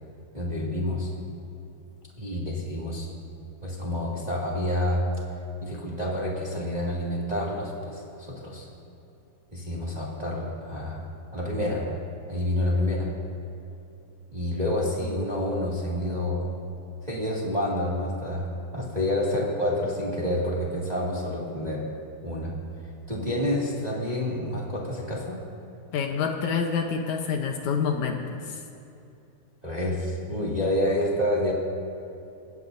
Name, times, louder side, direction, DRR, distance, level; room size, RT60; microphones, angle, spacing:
voice 1, 0.3-1.1 2.2-3.1 3.6-5.0 5.6-8.7 9.5-11.0 11.3-12.0 12.3-13.1 14.3-16.5 17.0-21.9 22.2-22.5 23.1-25.4 29.6-31.5, left 1 dB, 15° right, -5 dB, 1.8 m, -28 dB
voice 2, 25.9-28.6, left 6 dB, 70° left, 3 dB, 2.1 m, -27 dB
30.0 x 16.0 x 2.7 m, 2.7 s
omnidirectional pair, 3.7 m